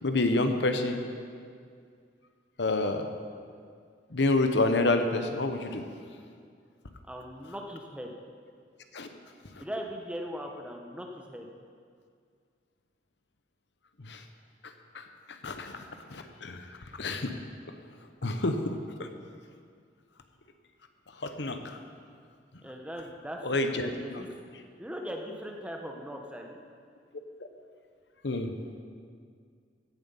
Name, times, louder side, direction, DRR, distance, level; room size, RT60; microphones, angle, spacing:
voice 1, 0.0-1.0 2.6-3.1 4.1-5.8 8.9-9.1 14.0-14.2 14.9-15.0 15.4-16.6 17.0-17.3 18.2-19.1 21.2-21.8 23.4-23.9 28.2-28.5, left 2 dB, 75° left, 7 dB, 0.9 m, -28 dB
voice 2, 7.1-8.1 9.6-11.5 22.6-24.3 24.8-26.6, equal, 5° right, 2 dB, 1.0 m, -39 dB
16.5 x 7.5 x 5.6 m, 2.2 s
head